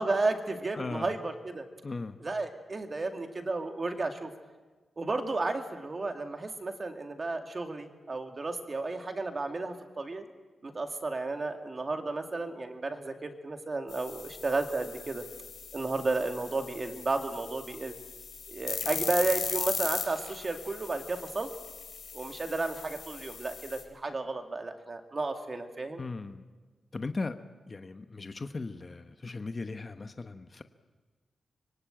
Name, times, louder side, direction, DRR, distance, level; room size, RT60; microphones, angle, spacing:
voice 1, 0.0-1.6 2.2-4.3 5.0-10.2 10.6-15.2 15.7-17.9 18.5-21.5 22.1-26.0, right 3 dB, 30° right, 5 dB, 2.3 m, -33 dB
voice 2, 0.7-1.1 1.8-2.2 26.0-26.4 26.9-27.4 27.7-30.6, left 3 dB, 30° left, 8 dB, 1.0 m, -37 dB
sound 1, 13.9-23.8, left 6 dB, 70° left, 4.5 m, -39 dB
25.5 x 23.5 x 9.0 m, 1.3 s
wide cardioid pair, 135°, 0 cm